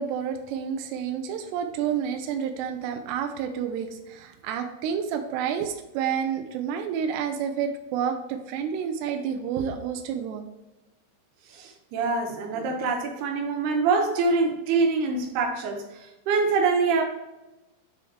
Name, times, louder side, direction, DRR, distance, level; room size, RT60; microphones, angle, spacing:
voice 1, 0.0-10.5, right 7 dB, 90° right, 5 dB, 2.3 m, -29 dB
voice 2, 11.5-17.0, right 4 dB, 70° right, 2 dB, 2.7 m, -25 dB
9.7 x 3.6 x 4.7 m, 1.0 s
omnidirectional pair, 5.6 m